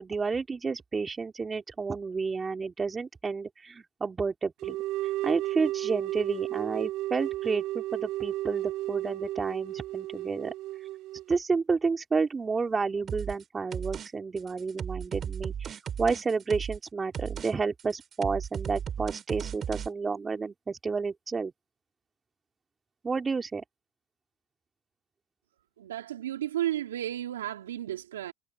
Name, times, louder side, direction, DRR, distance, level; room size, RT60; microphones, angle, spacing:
voice 1, 0.0-4.8 5.2-10.5 11.3-21.5 23.0-23.6, right 4 dB, 25° right, 3.0 m, -30 dB
sound 1, 4.6-11.4, right 16 dB, 60° right, 0.8 m, -33 dB
sound 2, 13.1-13.4 13.7-14.1 14.4-16.9 17.1-17.5 17.8-19.9, right 8 dB, 40° right, 3.8 m, -35 dB
voice 2, 25.8-28.3, right 12 dB, 85° right, 3.3 m, -33 dB
hypercardioid pair, 75°, 0 cm